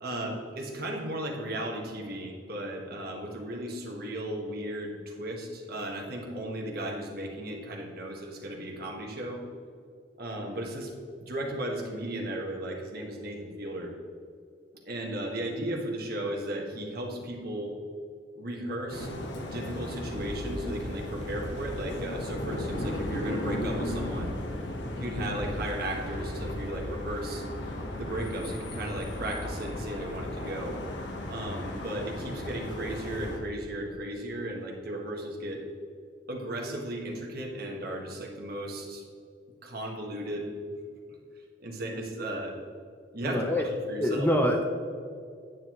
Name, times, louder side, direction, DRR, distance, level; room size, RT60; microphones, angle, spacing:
voice 1, 0.0-9.4 10.2-10.9 11.2-13.9 14.8-17.7 18.4-19.1 19.4-24.3 25.0-27.4 28.0-30.8 31.3-35.6 36.3-39.0 39.6-40.5 41.6-42.5 43.1-44.3, right 1 dB, 55° right, 0 dB, 1.6 m, -35 dB
sound 1, 18.9-33.4, left 1 dB, 75° left, 1.2 m, -35 dB
voice 2, 43.2-43.7 44.0-44.6, equal, 10° left, 2 dB, 0.6 m, -25 dB
9.3 x 9.3 x 3.1 m, 2.3 s
head